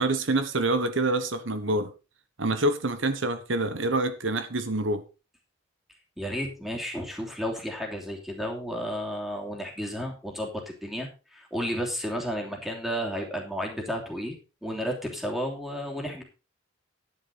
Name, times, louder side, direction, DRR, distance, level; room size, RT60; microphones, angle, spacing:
voice 1, 0.0-1.9 2.4-5.0, right 2 dB, 85° right, 1.3 m, -26 dB
voice 2, 6.2-16.2, equal, ahead, 3.1 m, -32 dB
10.5 x 10.5 x 4.2 m
head